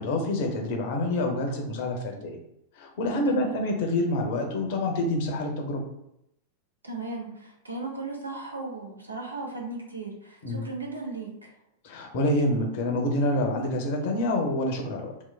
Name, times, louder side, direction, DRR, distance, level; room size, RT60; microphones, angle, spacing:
voice 1, 0.0-2.4 2.8-5.8 10.4-10.6 11.8-15.1, left 1 dB, 50° left, 2 dB, 0.5 m, -27 dB
voice 2, 3.1-3.6 6.8-11.5, right 3 dB, 80° right, 0 dB, 0.5 m, -36 dB
3.0 x 2.0 x 2.2 m, 0.79 s
figure-of-eight pair, 90°, 0 cm